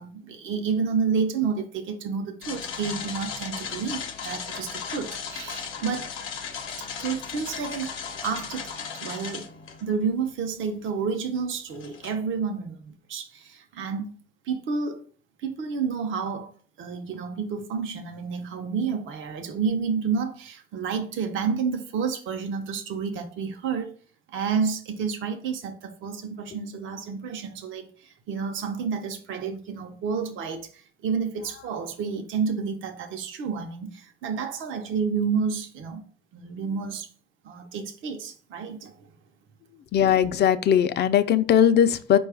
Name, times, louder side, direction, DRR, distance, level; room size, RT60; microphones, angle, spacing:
voice 1, 0.0-6.1 6.8-8.0 8.2-9.5 9.8-14.1 14.5-15.0 15.4-16.5 16.8-23.9 24.3-36.1 36.3-37.1 37.4-38.9, right 5 dB, 80° right, 0.6 m, -30 dB
sound 1, 2.4-9.9 10.5-10.6 11.7-12.1, left 6 dB, 85° left, 0.7 m, -36 dB
voice 2, 39.9-42.2, left 9 dB, 55° left, 0.4 m, -19 dB
4.7 x 2.3 x 4.7 m
cardioid pair, 90°, 20 cm